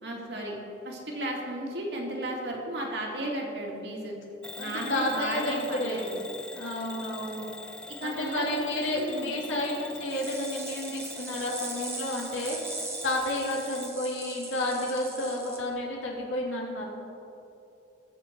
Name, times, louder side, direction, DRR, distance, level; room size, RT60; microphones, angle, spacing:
voice 1, 0.0-0.6 0.8-4.1 4.6-6.1 7.9-9.4, right 1 dB, 60° right, -1 dB, 2.5 m, -34 dB
Bell / Alarm, 4.4-14.0, left 2 dB, 5° left, 0.4 m, -44 dB
voice 2, 4.6-6.0 6.5-7.5 8.0-16.8, left 1 dB, 80° left, -3 dB, 2.9 m, -31 dB
sound 1, 10.1-15.6, right 2 dB, 15° right, 1.5 m, -40 dB
20.5 x 7.7 x 4.7 m, 2.8 s
head